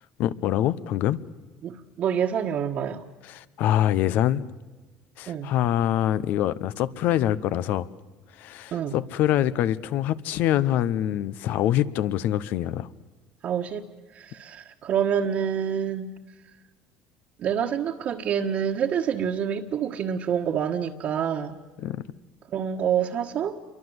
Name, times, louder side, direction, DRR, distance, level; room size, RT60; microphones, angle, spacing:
voice 1, 0.2-1.2 3.3-4.5 5.2-7.9 8.4-12.9 21.8-22.1, left 12 dB, 65° left, 16 dB, 1.0 m, -25 dB
voice 2, 1.6-3.0 5.3-5.5 8.7-9.0 13.4-13.8 14.1-16.1 17.4-21.6 22.5-23.6, right 8 dB, 50° right, -2 dB, 1.6 m, -27 dB
28.0 x 23.5 x 8.1 m, 1.2 s
cardioid pair, 115°, 3 cm